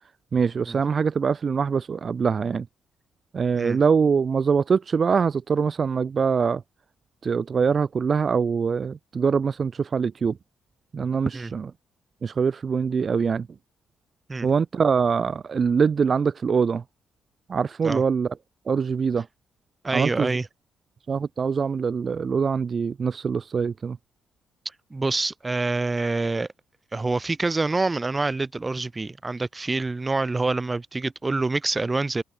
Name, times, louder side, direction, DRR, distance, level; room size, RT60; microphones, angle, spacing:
voice 1, 0.3-2.7 3.3-6.6 7.2-10.4 10.9-11.7 12.2-13.5 14.4-16.8 17.5-18.3 18.7-19.3 19.9-20.3 21.1-24.0, right 6 dB, 40° right, 0.5 m, -23 dB
voice 2, 19.8-20.5 24.9-26.5 26.9-32.2, right 3 dB, 20° right, 2.7 m, -26 dB
open air
cardioid pair, 90°, 0 cm